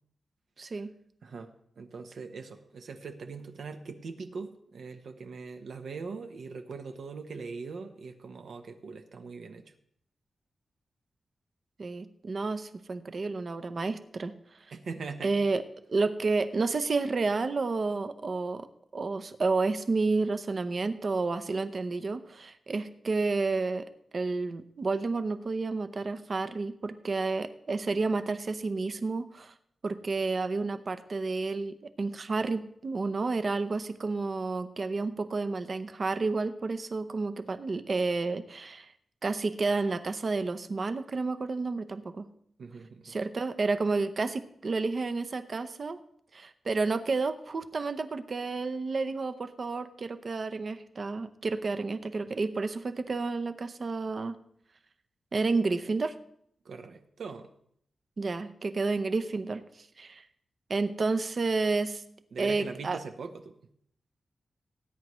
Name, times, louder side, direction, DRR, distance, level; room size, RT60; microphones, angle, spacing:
voice 1, 0.6-0.9 11.8-14.3 15.2-15.6 15.9-18.7 18.9-29.5 29.8-38.9 39.2-42.3 43.0-46.0 46.3-54.4 55.3-56.1 58.2-59.6 60.0-60.2 60.7-62.0 62.4-63.0, right 3 dB, 40° right, 11 dB, 0.7 m, -30 dB
voice 2, 1.2-9.7 14.7-15.3 42.6-43.2 56.6-57.5 62.3-63.5, right 4 dB, 70° right, 6 dB, 0.9 m, -41 dB
18.5 x 9.6 x 3.1 m, 0.67 s
wide cardioid pair, 175°, 0 cm